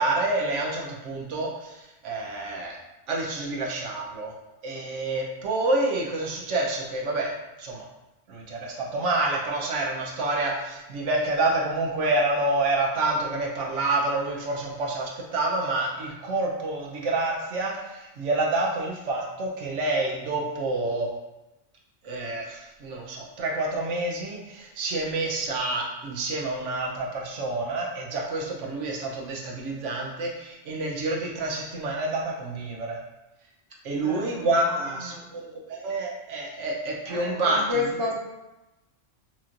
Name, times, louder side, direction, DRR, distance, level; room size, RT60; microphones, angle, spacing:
voice 1, 0.0-2.8 3.1-4.3 4.6-7.8 8.3-21.1 22.0-33.0 33.8-37.6, right 2 dB, 85° right, -1 dB, 1.1 m, -28 dB
voice 2, 33.9-35.2 37.0-38.1, left 3 dB, 20° right, -3 dB, 0.7 m, -31 dB
5.8 x 2.8 x 2.5 m, 0.99 s
omnidirectional pair, 1.2 m